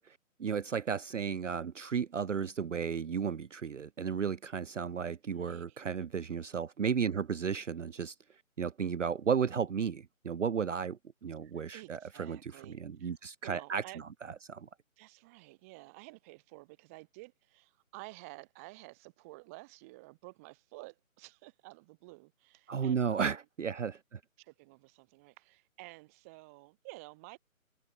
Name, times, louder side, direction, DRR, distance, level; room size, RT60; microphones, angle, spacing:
voice 1, 0.1-8.1 8.6-14.0 14.5-14.7 22.7-24.2, right 7 dB, 60° right, 0.7 m, -34 dB
voice 2, 5.3-5.8 11.4-13.1 13.4-14.0 15.0-23.3 24.4-27.4, right 25 dB, 10° right, 1.7 m, -52 dB
figure-of-eight pair, 160°, 42 cm